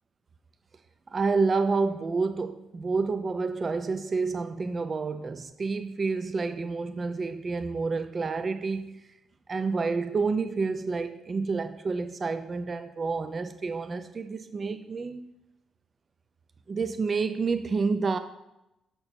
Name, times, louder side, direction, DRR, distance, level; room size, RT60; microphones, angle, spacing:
voice 1, 1.1-9.0 9.5-15.3 16.7-18.2, right 4 dB, 35° right, 9 dB, 0.5 m, -29 dB
6.6 x 4.5 x 5.3 m, 0.90 s
cardioid pair, 90°, 0 cm